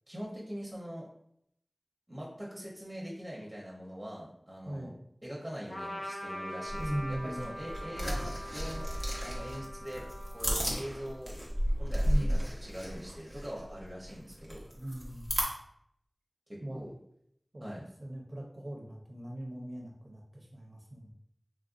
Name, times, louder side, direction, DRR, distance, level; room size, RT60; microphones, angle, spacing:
voice 1, 0.1-1.1 2.1-4.9 5.2-8.9 9.2-10.0 10.3-11.3 11.8-14.6 16.5-16.9 17.6-17.8, equal, 25° right, -4 dB, 0.7 m, -42 dB
Trumpet, 5.7-11.6, equal, 55° left, 0.6 m, -43 dB
sound 1, 6.7-15.4, equal, 20° left, 0.9 m, -34 dB
voice 2, 6.8-7.5 12.0-12.3 14.8-15.3 16.6-16.8 17.5-17.6 18.0-21.1, right 1 dB, 55° right, -1 dB, 0.6 m, -39 dB
3.1 x 2.5 x 2.4 m, 0.72 s
wide cardioid pair, 40°, 0 cm